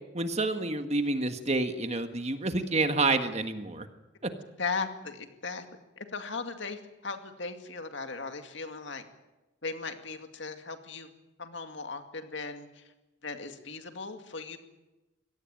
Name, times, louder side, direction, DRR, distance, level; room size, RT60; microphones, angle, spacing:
voice 1, 0.1-3.9 4.2-4.3, right 2 dB, 35° right, 8 dB, 1.6 m, -28 dB
voice 2, 4.6-5.6 6.0-9.1 9.6-11.1 11.4-12.9 13.2-14.6, left 4 dB, 60° left, 7 dB, 2.3 m, -37 dB
23.5 x 18.0 x 9.0 m, 1.0 s
head